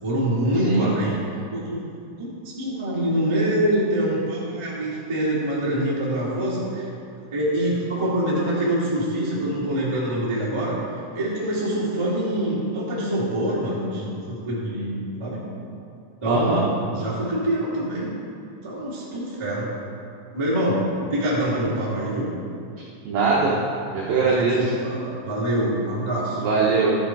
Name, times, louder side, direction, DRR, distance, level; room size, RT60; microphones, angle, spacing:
voice 1, 0.0-1.2 1.5-1.8 2.2-6.9 7.3-10.7 11.1-15.4 16.2-18.1 18.6-19.7 20.3-20.8 21.1-22.3 24.1-26.4, right 1 dB, 15° right, -8 dB, 0.8 m, -25 dB
voice 2, 16.3-16.6 23.0-23.6 23.9-24.7 26.4-27.0, right 4 dB, 80° right, -5 dB, 2.1 m, -21 dB
13.0 x 7.4 x 4.7 m, 2.5 s
omnidirectional pair, 5.7 m